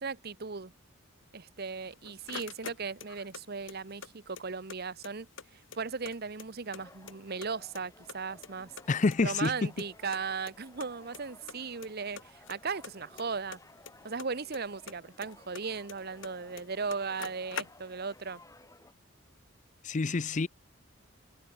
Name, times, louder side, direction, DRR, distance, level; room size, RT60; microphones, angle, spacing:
voice 1, 0.0-0.7 1.3-5.3 5.5-8.7 9.2-13.6 14.0-18.4, right 5 dB, 50° right, 0.9 m, -37 dB
sound 1, 1.7-3.4 3.7-4.8 5.0-5.1 5.4-6.8 7.1-7.8 8.1-9.5 9.8-9.9 10.1-10.2 10.5-10.6 10.8-11.2 11.5-11.9 12.2-14.6 14.9-16.3 16.6-16.7 16.9-18.1, left 6 dB, 65° left, 1.8 m, -44 dB
sound 2, 6.8-18.9, left 2 dB, 15° left, 3.1 m, -57 dB
voice 2, 8.9-9.5 19.8-20.5, left 3 dB, 35° left, 0.5 m, -27 dB
head